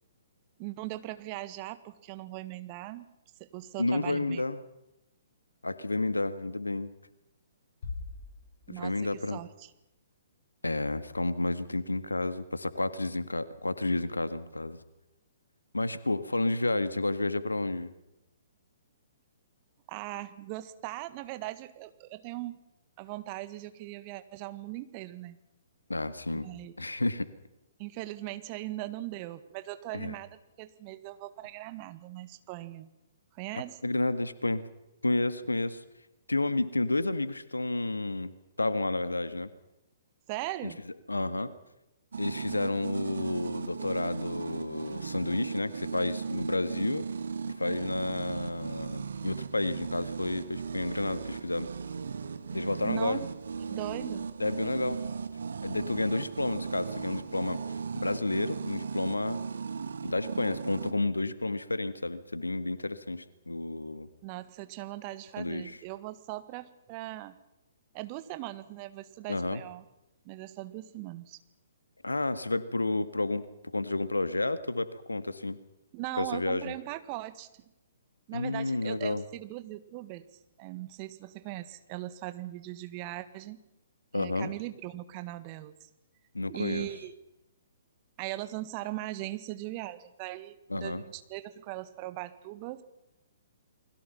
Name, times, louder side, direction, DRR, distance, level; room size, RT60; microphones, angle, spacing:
voice 1, 0.6-3.1 3.4-4.4 8.7-9.7 19.9-22.6 23.0-25.4 26.3-26.8 27.8-32.9 33.3-33.8 40.3-40.8 52.8-53.3 53.7-54.3 64.2-67.4 67.9-69.8 70.2-71.4 75.9-77.5 78.3-80.2 80.6-83.6 84.1-85.7 86.5-87.1 88.2-92.8, right 17 dB, 30° right, 12 dB, 1.6 m, -39 dB
voice 2, 3.8-4.6 5.6-6.9 8.7-9.4 10.6-14.8 15.7-17.9 25.9-26.5 26.8-27.3 29.9-30.1 33.5-34.7 35.0-35.8 36.3-38.3 38.6-39.5 40.6-40.7 41.1-41.5 42.2-47.1 47.4-51.7 52.5-53.2 54.4-55.0 55.6-57.6 58.0-59.4 60.0-64.1 65.4-65.8 69.3-69.6 72.0-75.6 76.2-76.7 78.3-79.3 84.1-84.5 86.3-86.9 90.7-91.0, left 2 dB, 80° left, 14 dB, 1.7 m, -31 dB
Bass drum, 7.8-9.2, left 4 dB, 55° left, 4.3 m, -42 dB
sound 1, 42.1-60.9, right 5 dB, 60° right, 1.6 m, -37 dB
29.5 x 21.5 x 5.8 m, 0.90 s
figure-of-eight pair, 125°, 0 cm